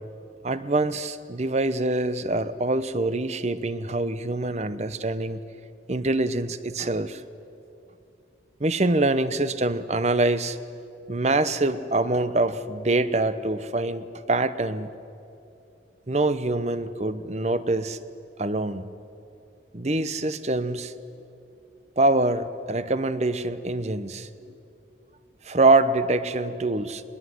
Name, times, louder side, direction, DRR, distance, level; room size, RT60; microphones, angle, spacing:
voice 1, 0.4-5.4 5.9-7.2 8.6-10.6 11.1-14.9 16.1-18.0 18.4-18.9 19.7-20.9 22.0-24.3 25.4-27.0, right 2 dB, 35° right, 13 dB, 0.9 m, -24 dB
21.5 x 21.5 x 9.5 m, 2.6 s
head